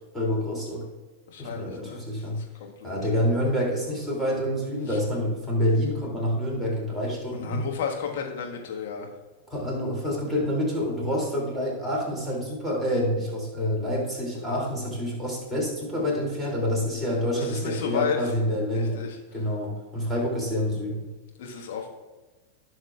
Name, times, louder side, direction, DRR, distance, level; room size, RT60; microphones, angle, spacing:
voice 1, 0.1-0.9 1.4-2.4 2.8-7.6 9.5-19.0 19.3-21.1, equal, ahead, -4 dB, 2.7 m, -27 dB
voice 2, 1.3-2.9 4.9-5.0 7.3-9.1 17.3-18.3 18.7-19.2 21.4-21.9, left 7 dB, 55° left, 1 dB, 1.4 m, -33 dB
15.0 x 6.5 x 2.4 m, 1.2 s
figure-of-eight pair, 90°, 0 cm